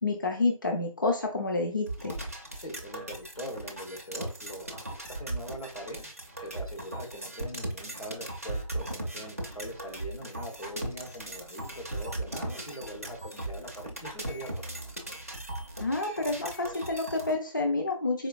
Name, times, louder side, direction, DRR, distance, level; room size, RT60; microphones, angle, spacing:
voice 1, 0.0-2.2 15.8-18.3, left 3 dB, 35° left, 3 dB, 0.4 m, -29 dB
sound 1, 1.9-17.3, right 1 dB, 25° right, 0.4 m, -38 dB
voice 2, 2.6-6.0 6.4-14.8, equal, 90° left, 1 dB, 1.3 m, -42 dB
4.2 x 2.6 x 2.4 m, 0.37 s
figure-of-eight pair, 165°, 18 cm